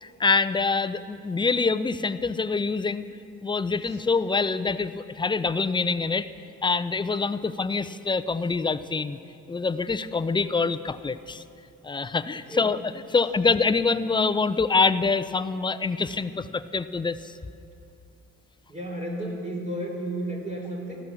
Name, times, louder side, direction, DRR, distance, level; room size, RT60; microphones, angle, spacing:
voice 1, 0.0-3.1 3.4-6.3 6.6-9.2 9.5-11.4 11.8-17.3, left 4 dB, 15° left, 12 dB, 0.5 m, -25 dB
voice 2, 18.7-21.0, right 1 dB, 25° right, -1 dB, 3.2 m, -33 dB
14.0 x 13.0 x 7.0 m, 2.6 s
cardioid pair, 90°, 30 cm